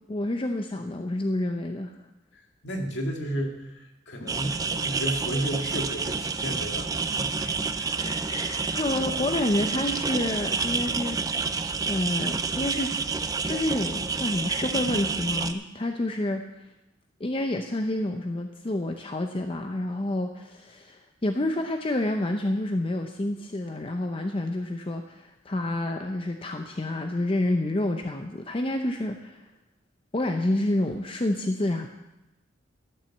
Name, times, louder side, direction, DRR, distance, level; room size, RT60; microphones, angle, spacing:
voice 1, 0.1-2.0 8.0-11.2 11.9-12.9 13.4-16.4 17.2-29.4 30.1-31.9, left 1 dB, 30° left, 5 dB, 0.6 m, -28 dB
voice 2, 2.3-8.1 10.7-10.8, equal, 65° left, 2 dB, 2.0 m, -33 dB
sound 1, 4.3-15.5, right 4 dB, 20° right, 0.4 m, -29 dB
12.0 x 7.4 x 7.2 m, 0.95 s
head